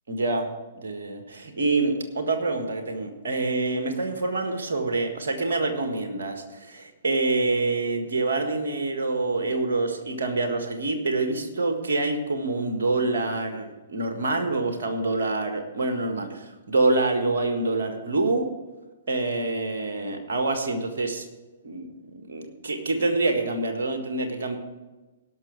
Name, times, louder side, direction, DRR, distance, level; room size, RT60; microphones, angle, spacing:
voice 1, 0.1-0.5 0.8-18.5 19.1-21.3 21.6-21.9 22.3-24.6, right 2 dB, 60° right, 6 dB, 1.7 m, -26 dB
18.0 x 6.1 x 4.7 m, 1.2 s
figure-of-eight pair, 115°, 0 cm